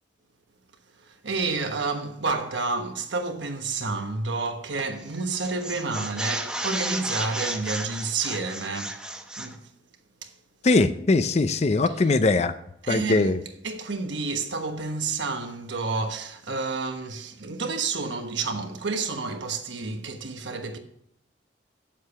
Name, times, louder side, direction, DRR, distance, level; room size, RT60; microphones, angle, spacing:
voice 1, 1.0-9.0 9.4-9.7 10.2-10.3 12.8-13.3 13.6-20.8, right 3 dB, 80° right, 1.2 m, -30 dB
sound 1, 4.8-5.0 5.3-9.6, right 1 dB, 5° right, 0.9 m, -33 dB
voice 2, 10.6-12.5 12.9-13.4, left 3 dB, 35° left, 0.5 m, -21 dB
8.8 x 7.4 x 5.7 m
head